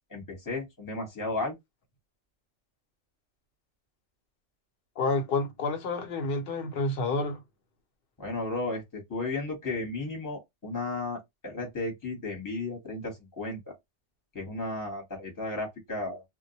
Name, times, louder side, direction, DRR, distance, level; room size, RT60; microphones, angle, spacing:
voice 1, 0.1-1.5 8.2-13.6 14.3-16.2, left 2 dB, 15° left, 1.0 m, -34 dB
voice 2, 5.0-7.4, left 3 dB, 55° left, 0.8 m, -29 dB
2.1 x 2.1 x 2.7 m
omnidirectional pair, 1.2 m